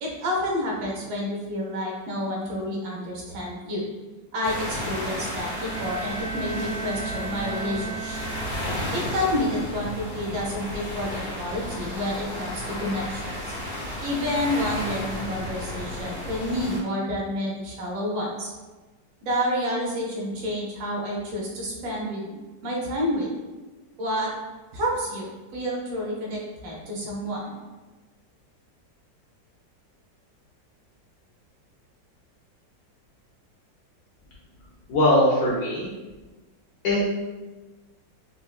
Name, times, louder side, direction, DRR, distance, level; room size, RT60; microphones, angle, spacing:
voice 1, 0.0-3.8 4.3-8.3 8.9-13.5 14.0-18.5 19.2-22.3 22.6-23.3 24.0-24.3 24.7-27.5, equal, 90° right, -3 dB, 1.6 m, -29 dB
sound 1, 4.4-16.8, left 1 dB, 85° left, 1.7 m, -33 dB
Bowed string instrument, 5.3-9.0, right 5 dB, 70° right, 0.8 m, -35 dB
voice 2, 34.9-35.9 36.8-37.1, left 1 dB, 70° left, -5 dB, 1.0 m, -20 dB
4.3 x 2.0 x 2.3 m, 1.2 s
omnidirectional pair, 2.0 m